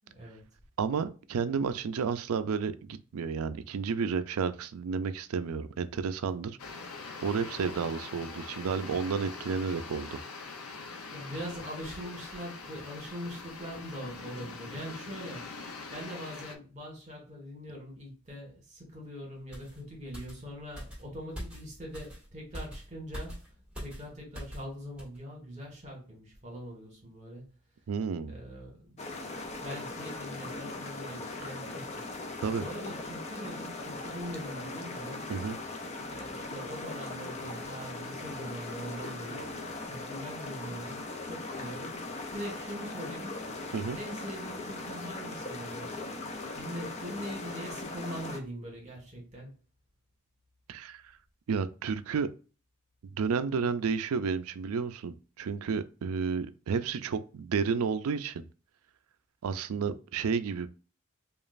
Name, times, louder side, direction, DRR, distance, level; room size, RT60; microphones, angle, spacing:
voice 1, 0.0-0.4 11.1-15.6 15.9-23.5 23.8-27.5 28.3-29.0 29.6-32.3 32.6-35.3 36.0-43.4 43.9-46.0 46.5-49.5, equal, 30° right, 1.4 m, -42 dB
voice 2, 0.8-6.5 7.2-10.2 27.9-28.4 32.4-32.6 35.3-35.6 43.7-44.0 50.7-51.0 51.5-52.3 53.1-58.4 59.4-60.7, right 5 dB, 75° right, 0.4 m, -31 dB
sound 1, 6.6-16.6, left 4 dB, 80° left, 0.7 m, -43 dB
sound 2, 19.5-24.7 25.0-25.2, equal, 5° right, 1.6 m, -43 dB
sound 3, 29.0-48.4, left 2 dB, 30° left, 0.4 m, -39 dB
5.0 x 2.4 x 2.4 m
head